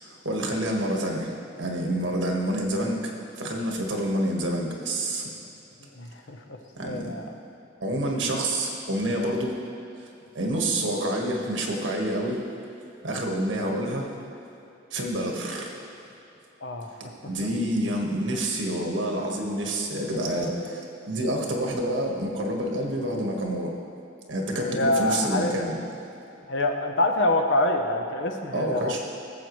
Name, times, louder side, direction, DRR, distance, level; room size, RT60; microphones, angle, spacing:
voice 1, 0.0-3.1 3.4-5.3 6.7-7.1 7.8-9.6 10.3-12.5 13.0-14.1 14.9-15.8 17.0-20.8 21.0-23.7 24.3-25.8 28.5-29.0, right 1 dB, 75° right, 0 dB, 1.6 m, -28 dB
voice 2, 5.8-6.6 6.8-7.3 16.6-16.9 20.1-20.9 24.6-25.6 26.5-29.0, left 1 dB, 75° left, 4 dB, 0.9 m, -26 dB
18.0 x 7.7 x 3.2 m, 2.9 s
head